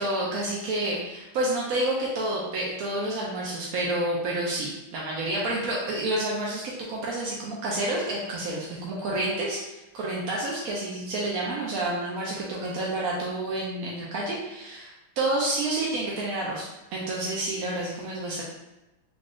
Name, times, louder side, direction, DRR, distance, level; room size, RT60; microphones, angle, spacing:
voice 1, 0.0-18.4, right 1 dB, 65° right, -4 dB, 0.8 m, -29 dB
3.8 x 3.7 x 2.4 m, 0.97 s
omnidirectional pair, 2.2 m